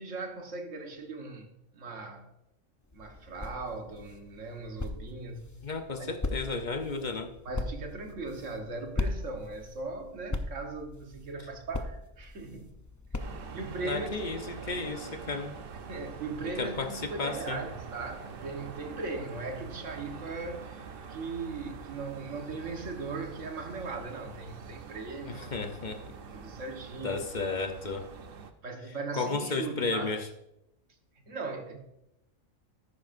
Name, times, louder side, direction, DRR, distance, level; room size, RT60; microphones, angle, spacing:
voice 1, 0.0-1.5 1.7-2.3 2.9-5.5 6.0-6.1 7.4-12.7 13.5-14.3 15.9-25.5 26.3-27.2 28.6-30.2 31.3-31.8, right 3 dB, 75° right, 1.6 m, -38 dB
sound 1, 2.8-13.8, left 2 dB, 25° left, 0.4 m, -39 dB
voice 2, 5.6-7.3 13.8-15.5 16.6-17.6 25.3-26.0 27.0-28.1 29.1-30.3, left 3 dB, 45° left, 0.8 m, -33 dB
sound 2, 13.2-28.5, right 6 dB, 50° right, 0.9 m, -45 dB
13.5 x 11.0 x 2.6 m
omnidirectional pair, 1.3 m